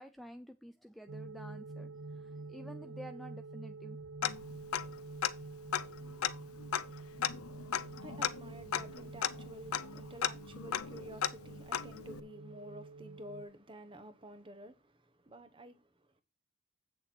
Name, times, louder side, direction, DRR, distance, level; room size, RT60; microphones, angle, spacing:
voice 1, 0.0-4.1, equal, ahead, 0.4 m, -50 dB
sound 1, 1.1-13.4, right 3 dB, 70° right, 1.2 m, -48 dB
Tick-tock, 4.2-5.0 5.2-5.3 5.7-12.2, left 9 dB, 85° left, 0.6 m, -36 dB
voice 2, 6.0-16.2, right 1 dB, 25° right, 0.9 m, -52 dB
8.5 x 6.6 x 4.4 m
head